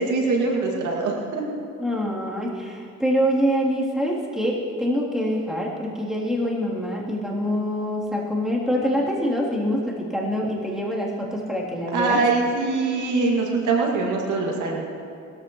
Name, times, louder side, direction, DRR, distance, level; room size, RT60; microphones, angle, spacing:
voice 1, 0.0-1.4 11.9-14.8, right 3 dB, 80° right, 0 dB, 2.2 m, -23 dB
voice 2, 1.8-12.2, equal, ahead, -5 dB, 3.1 m, -25 dB
20.5 x 13.5 x 3.1 m, 2.5 s
cardioid pair, 90°, 30 cm